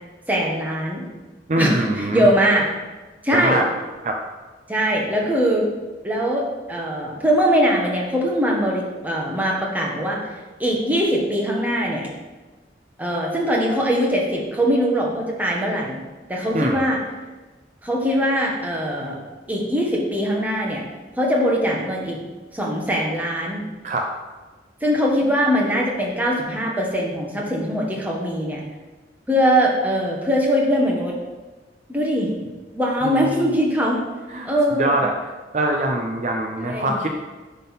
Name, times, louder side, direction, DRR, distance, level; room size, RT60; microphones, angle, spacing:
voice 1, 0.3-1.1 1.6-2.7 3.2-3.6 4.7-5.7 6.0-6.4 6.7-10.3 10.6-12.1 13.0-16.0 16.3-17.0 17.8-19.2 19.5-20.8 21.2-22.2 22.5-23.6 24.8-28.6 29.3-31.1 31.9-32.3 32.7-34.0 34.4-35.0 36.6-37.0, equal, 10° right, -2 dB, 1.3 m, -21 dB
voice 2, 1.5-2.3 3.3-3.7 4.0-4.2 16.5-16.9 23.8-24.1 33.0-33.3 34.3-34.5 34.8-35.1 35.5-37.1, right 1 dB, 40° right, 1 dB, 0.6 m, -23 dB
9.3 x 3.8 x 5.8 m, 1.3 s
head